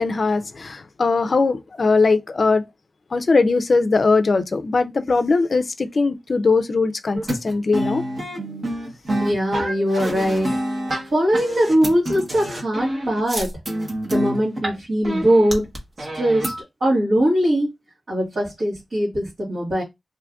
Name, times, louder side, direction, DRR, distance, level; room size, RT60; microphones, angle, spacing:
voice 1, 0.0-2.6 3.1-8.0, left 3 dB, 50° left, 0.4 m, -20 dB
sound 1, 7.1-14.8 15.0-16.6, right 1 dB, 40° right, 0.9 m, -27 dB
voice 2, 9.2-10.6 11.1-13.5 14.0-15.7 16.0-16.5 16.8-17.7 18.1-19.8, equal, 65° right, 1.3 m, -21 dB
2.6 x 2.4 x 3.4 m
wide cardioid pair, 125°, 0 cm